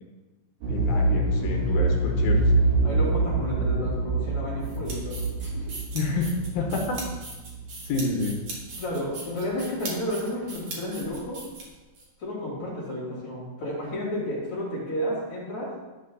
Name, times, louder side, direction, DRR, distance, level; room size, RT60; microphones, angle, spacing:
sound 1, 0.6-8.4 8.7-8.8, right 2 dB, 90° right, 3.5 m, -25 dB
voice 1, 0.7-2.5 5.9-7.0 7.9-8.3, left 3 dB, 65° left, 1 dB, 2.6 m, -29 dB
voice 2, 2.8-5.7 8.7-11.5 12.2-15.7, equal, 45° left, -5 dB, 3.5 m, -32 dB
sound 2, 4.6-12.0, right 2 dB, 50° right, 2.4 m, -40 dB
13.5 x 8.2 x 2.3 m, 1.2 s
omnidirectional pair, 4.9 m